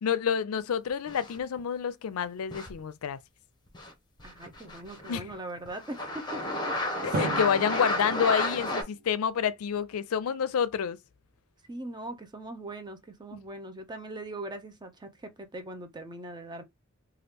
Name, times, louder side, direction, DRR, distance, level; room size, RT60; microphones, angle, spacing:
voice 1, 0.0-3.2 5.1-5.3 7.0-11.0, left 7 dB, 80° left, 0.4 m, -28 dB
sound 1, 1.1-1.6 2.5-2.8 3.7-3.9 4.2-5.3 5.7-8.8, left 1 dB, 20° left, 0.9 m, -32 dB
voice 2, 4.2-6.7 11.7-16.6, right 1 dB, 20° right, 0.5 m, -41 dB
Drum, 7.1-9.2, right 2 dB, 45° right, 0.8 m, -36 dB
2.9 x 2.3 x 3.4 m
head